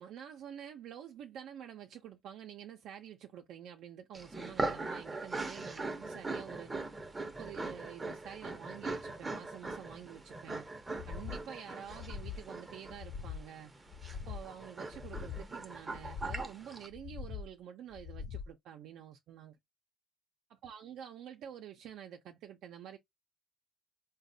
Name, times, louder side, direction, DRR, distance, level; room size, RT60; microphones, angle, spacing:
voice 1, 0.0-6.7 7.2-10.6 11.1-13.7 14.3-19.6 20.5-23.0, right 9 dB, 75° right, 0.4 m, -48 dB
sound 1, 4.1-16.9, right 3 dB, 15° right, 0.6 m, -41 dB
sound 2, 10.9-11.4 11.8-12.4 12.9-13.5 13.9-14.5 14.9-15.5 15.9-16.5 16.9-17.5 17.9-18.5, left 7 dB, 45° left, 0.3 m, -43 dB
3.9 x 2.2 x 2.6 m
cardioid pair, 125°, 0 cm